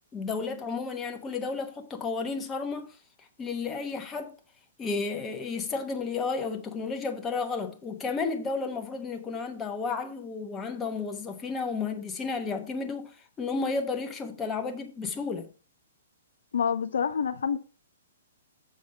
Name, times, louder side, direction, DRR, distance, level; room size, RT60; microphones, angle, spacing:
voice 1, 0.1-3.0 3.4-4.4 4.8-15.5, left 4 dB, 15° left, 1.0 m, -32 dB
voice 2, 16.5-17.6, left 7 dB, 60° left, 0.5 m, -27 dB
7.1 x 6.3 x 3.7 m
figure-of-eight pair, 115°, 0 cm